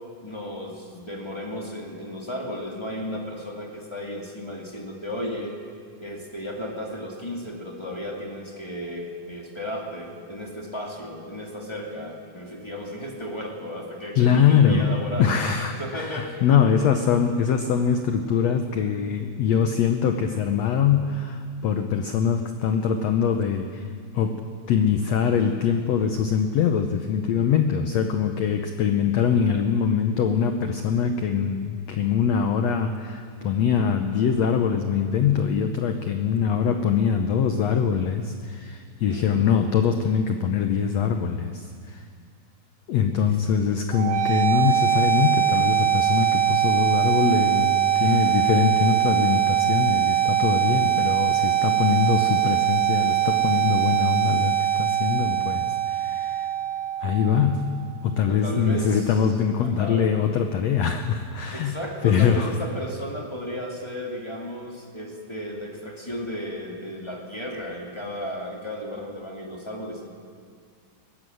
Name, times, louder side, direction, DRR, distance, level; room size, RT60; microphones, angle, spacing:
voice 1, 0.2-5.5 6.0-16.6 33.3-33.7 39.1-39.6 43.2-43.3 48.0-48.3 58.3-59.2 59.6-60.1 61.5-70.1, equal, 10° left, -1 dB, 1.5 m, -34 dB
voice 2, 14.1-23.9 24.1-42.0 42.9-56.5 57.0-61.8 62.0-62.5, left 7 dB, 85° left, 6 dB, 1.5 m, -23 dB
sound 1, 43.9-57.9, right 11 dB, 85° right, 3.7 m, -22 dB
20.5 x 16.5 x 7.8 m, 2.2 s
omnidirectional pair, 4.1 m